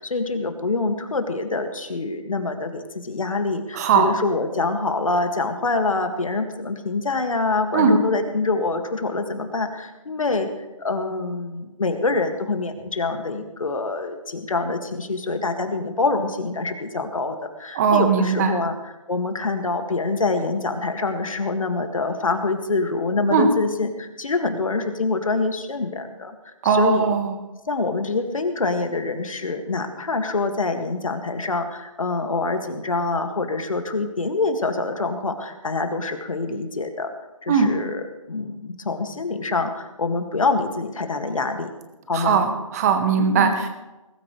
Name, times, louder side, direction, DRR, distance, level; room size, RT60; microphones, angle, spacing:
voice 1, 0.0-10.5 10.8-26.3 26.6-27.1 27.7-37.1 37.4-41.7 42.1-42.4 43.2-43.6, left 3 dB, 70° left, 6 dB, 2.1 m, -25 dB
voice 2, 3.7-4.1 7.7-8.0 17.7-18.5 23.3-23.5 26.6-27.3 37.5-37.7 42.1-43.7, right 6 dB, 30° right, 6 dB, 1.6 m, -19 dB
21.0 x 13.0 x 3.3 m, 1.1 s
figure-of-eight pair, 155°, 18 cm